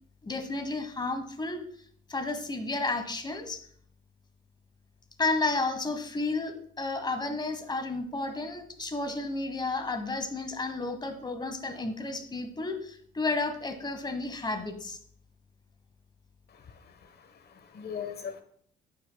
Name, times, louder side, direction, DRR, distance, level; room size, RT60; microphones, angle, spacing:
voice 1, 0.2-1.6 2.1-3.6 5.2-15.0, left 3 dB, 20° left, 7 dB, 1.1 m, -32 dB
voice 2, 16.5-18.4, left 7 dB, 55° left, 8 dB, 1.0 m, -41 dB
8.6 x 6.3 x 2.2 m, 0.63 s
cardioid pair, 90°, 20 cm